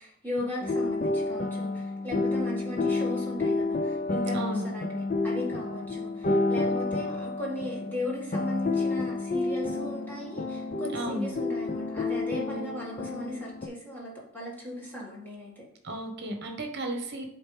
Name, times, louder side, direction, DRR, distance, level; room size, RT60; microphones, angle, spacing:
voice 1, 0.0-15.6, left 1 dB, 10° left, -5 dB, 2.0 m, -37 dB
sound 1, 0.6-13.7, left 3 dB, 35° left, 0.4 m, -30 dB
voice 2, 4.3-4.7 10.9-11.3 15.8-17.3, right 1 dB, 50° right, 4 dB, 1.2 m, -34 dB
7.2 x 4.3 x 3.4 m, 0.76 s
head